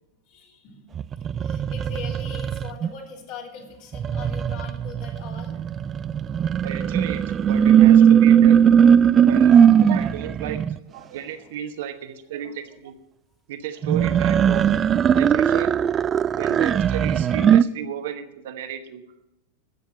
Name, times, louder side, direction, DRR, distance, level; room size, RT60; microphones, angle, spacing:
voice 1, 0.3-0.9 1.4-5.5 5.8-6.0, left 6 dB, 50° left, 0 dB, 3.1 m, -41 dB
sound 1, 0.9-2.9 3.9-10.8 13.8-17.6, right 8 dB, 25° right, 0.3 m, -18 dB
voice 2, 6.5-8.7 9.2-10.6 10.9-12.9 13.5-14.7 15.1-15.7 16.4-19.0, right 9 dB, 55° right, 8 dB, 1.0 m, -34 dB
14.5 x 6.9 x 7.4 m, 0.91 s
figure-of-eight pair, 90°, 0 cm